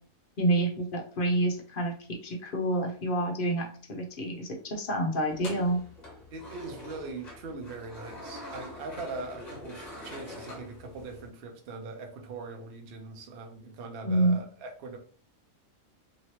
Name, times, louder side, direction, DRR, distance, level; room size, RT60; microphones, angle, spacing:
voice 1, 0.4-5.8 14.0-14.4, right 1 dB, 50° left, 0.6 m, -28 dB
sound 1, 5.3-11.3, left 1 dB, 35° left, 1.0 m, -44 dB
voice 2, 6.3-15.0, right 3 dB, 50° right, 0.7 m, -41 dB
3.0 x 2.9 x 2.9 m
omnidirectional pair, 1.5 m